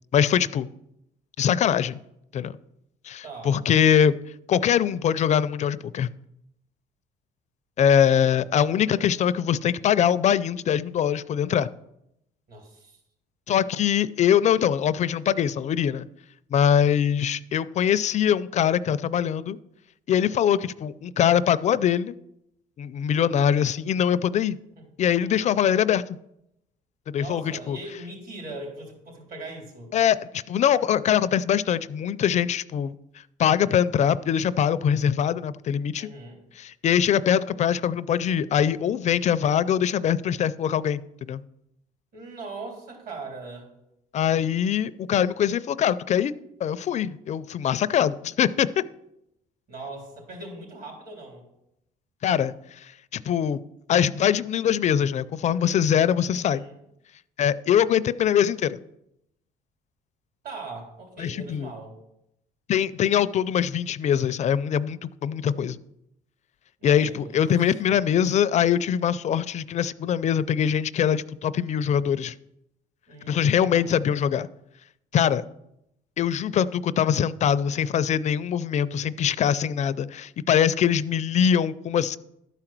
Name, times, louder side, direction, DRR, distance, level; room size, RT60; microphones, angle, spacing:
voice 1, 0.1-0.7 1.4-2.0 2.3-2.5 3.0-4.2 4.5-6.1 7.8-11.7 13.5-16.1 16.5-19.6 20.1-22.1 22.8-24.6 25.0-26.0 27.1-27.8 29.9-30.2 30.5-32.9 33.4-36.1 36.6-41.4 44.1-46.3 46.6-48.8 52.2-53.6 53.9-56.6 57.4-58.8 61.2-61.7 62.7-65.8 66.8-72.3 73.3-74.5 75.1-75.4 76.2-82.2, left 9 dB, 45° left, 16 dB, 0.4 m, -23 dB
voice 2, 3.2-3.6 8.0-8.3 12.5-13.0 24.8-24.9 25.3-25.6 27.2-29.9 36.0-36.4 42.1-43.7 49.7-51.4 56.3-56.8 60.4-62.0 66.8-67.7 73.1-74.0, right 2 dB, 60° right, 1 dB, 3.7 m, -40 dB
12.0 x 4.9 x 5.9 m, 0.82 s
cardioid pair, 110°, 17 cm